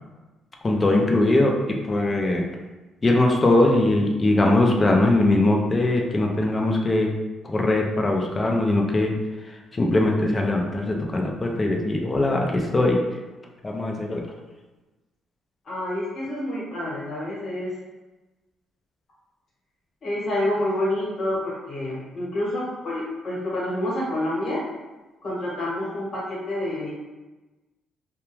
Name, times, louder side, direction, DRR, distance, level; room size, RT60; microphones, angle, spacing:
voice 1, 0.6-2.4 3.0-7.1 7.4-9.1 9.7-13.0 13.6-14.2, left 2 dB, 20° left, 1 dB, 0.3 m, -21 dB
voice 2, 15.6-17.7 20.0-24.6 25.2-26.9, left 1 dB, 45° left, -6 dB, 1.0 m, -28 dB
2.3 x 2.1 x 3.0 m, 1.2 s
cardioid pair, 150°, 0 cm